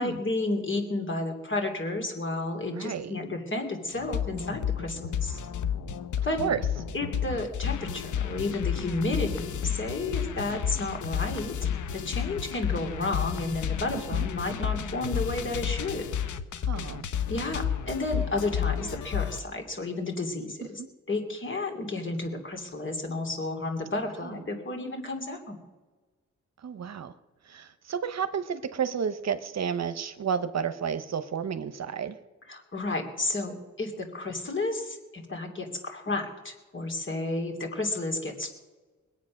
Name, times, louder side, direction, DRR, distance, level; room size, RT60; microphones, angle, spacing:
voice 1, 0.0-5.4 6.2-6.4 6.9-11.6 11.9-16.0 17.3-20.8 21.1-25.6 32.5-38.5, left 2 dB, 40° left, 3 dB, 2.8 m, -32 dB
voice 2, 2.7-3.2 6.4-6.7 14.1-14.3 16.6-17.1 20.8-20.9 24.2-24.4 26.6-27.1 27.4-32.2, right 7 dB, 60° right, 12 dB, 0.8 m, -32 dB
sound 1, 3.9-19.4, left 8 dB, 85° left, 0.8 m, -31 dB
21.5 x 8.3 x 6.3 m, 1.3 s
wide cardioid pair, 115°, 30 cm